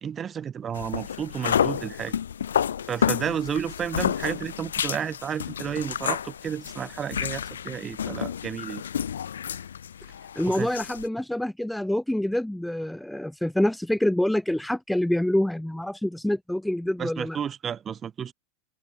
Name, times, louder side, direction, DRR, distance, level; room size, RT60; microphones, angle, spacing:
voice 1, 0.0-2.2 2.9-8.8 10.4-10.7 17.0-18.3, right 8 dB, 25° right, 2.2 m, -32 dB
sound 1, 0.7-11.1, left 8 dB, 65° left, 0.8 m, -30 dB
voice 2, 10.4-17.4, left 1 dB, ahead, 0.9 m, -26 dB
figure-of-eight pair, 90°, 0 cm